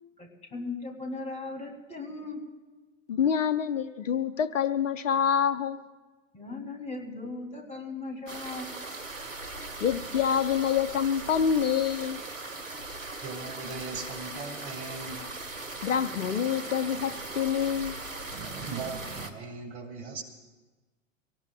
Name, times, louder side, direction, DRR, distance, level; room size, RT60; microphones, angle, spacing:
voice 1, 0.2-2.4 6.3-8.7, left 3 dB, 15° left, 1 dB, 3.2 m, -38 dB
voice 2, 3.1-5.8 9.8-12.2 15.8-18.0, left 8 dB, 70° left, 13 dB, 0.8 m, -26 dB
sound 1, 8.3-19.3, right 2 dB, 80° right, 1.4 m, -39 dB
voice 3, 13.2-15.9 17.0-17.2 17.7-17.8 18.2-20.2, right 4 dB, 55° right, 6 dB, 2.2 m, -40 dB
24.0 x 18.5 x 2.4 m, 1.2 s
figure-of-eight pair, 90°, 39 cm